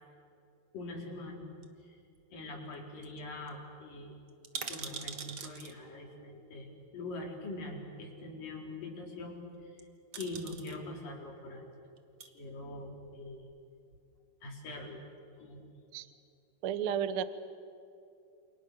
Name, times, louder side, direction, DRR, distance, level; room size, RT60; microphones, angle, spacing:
voice 1, 0.7-1.5 1.8-2.0 2.3-4.2 4.7-6.7 6.9-9.4 9.6-9.9 10.2-11.7 12.3-13.5 14.4-15.0 15.4-15.7, left 2 dB, 70° left, -1 dB, 6.0 m, -43 dB
sound 1, 1.6-2.4 2.7-2.8 3.0-3.2 3.5-3.6 4.3-5.7 6.9-7.0 9.6-9.8 10.1-10.8 11.9-12.3 13.0-13.7 13.9-14.0, right 6 dB, 50° right, 1.8 m, -43 dB
voice 2, 16.6-17.2, right 9 dB, 85° right, 12 dB, 1.2 m, -32 dB
29.0 x 28.5 x 6.7 m, 2.6 s
omnidirectional pair, 4.1 m